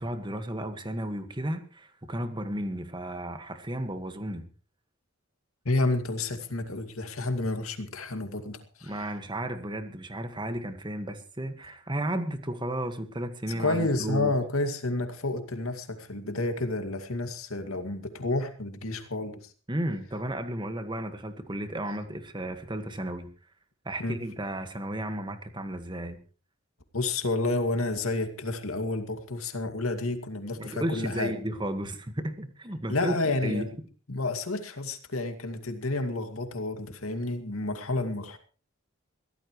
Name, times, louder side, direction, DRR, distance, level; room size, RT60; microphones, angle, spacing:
voice 1, 0.0-4.4 8.8-14.3 19.7-23.3 23.9-26.2 30.6-33.1 33.4-33.7, right 1 dB, 20° right, 8 dB, 1.7 m, -33 dB
voice 2, 5.6-9.0 13.5-19.5 24.0-24.2 26.9-31.3 32.9-33.7 34.1-38.4, left 2 dB, 90° left, 7 dB, 2.4 m, -30 dB
23.0 x 16.0 x 3.2 m, 0.37 s
head